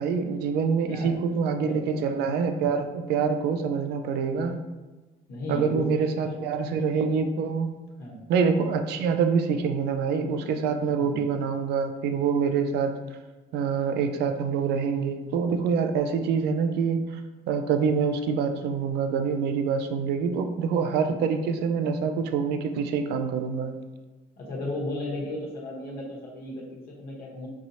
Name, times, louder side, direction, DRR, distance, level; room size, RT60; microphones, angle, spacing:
voice 1, 0.0-4.6 5.5-7.7 8.3-12.9 13.5-17.2 17.5-23.7, right 6 dB, 80° right, 7 dB, 0.4 m, -26 dB
voice 2, 5.3-6.3 8.0-8.2 11.0-11.2 13.4-13.5 21.0-21.2 24.4-27.5, left 1 dB, 65° left, -4 dB, 1.0 m, -35 dB
4.6 x 2.8 x 2.7 m, 1.2 s
cardioid pair, 110°, 17 cm